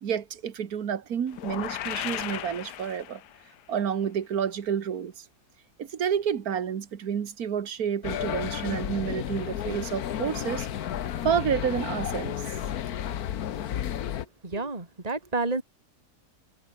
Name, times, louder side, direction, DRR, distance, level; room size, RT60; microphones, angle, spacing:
voice 1, 0.0-3.2 3.7-5.2 5.8-10.7 11.2-12.5, right 8 dB, 65° right, 1.8 m, -29 dB
sound 1, 1.3-3.5, left 12 dB, 85° left, 1.4 m, -35 dB
sound 2, 8.0-14.2, left 10 dB, 65° left, 1.4 m, -32 dB
voice 2, 14.4-15.6, right 3 dB, 25° right, 2.9 m, -30 dB
omnidirectional pair, 1.7 m